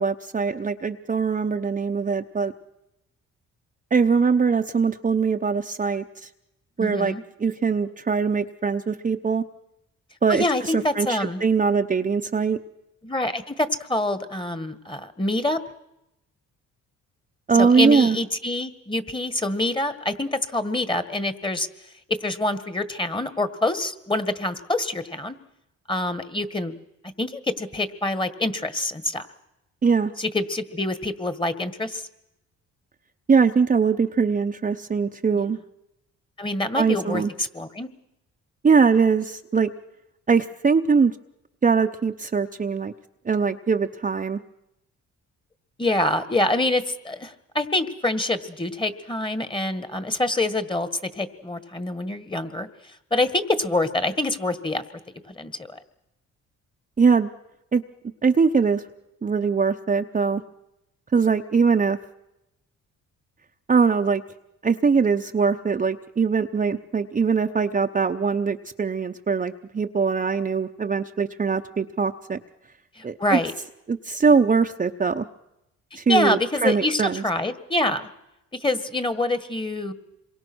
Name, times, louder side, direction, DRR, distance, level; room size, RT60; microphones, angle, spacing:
voice 1, 0.0-2.5 3.9-6.3 6.8-7.1 7.4-9.4 10.2-12.6 17.5-18.2 29.8-30.1 33.3-35.6 36.7-37.3 38.6-39.7 40.3-41.2 41.6-42.9 43.2-44.4 57.0-57.3 57.7-57.8 58.2-58.8 59.2-60.4 61.1-62.0 63.7-64.2 64.6-72.4 73.0-73.4 73.9-75.2 76.0-77.2, right 5 dB, 25° right, 5 dB, 0.8 m, -22 dB
voice 2, 6.8-7.2 10.3-11.4 13.0-15.6 17.6-21.7 22.1-25.4 25.9-26.8 27.2-29.3 30.2-32.1 35.4-35.5 36.4-37.9 45.8-52.7 53.1-54.8 55.3-55.8 73.0-73.5 76.1-78.1 78.5-79.9, left 2 dB, 15° left, 12 dB, 1.8 m, -26 dB
27.0 x 23.0 x 6.3 m, 0.89 s
cardioid pair, 90°, 30 cm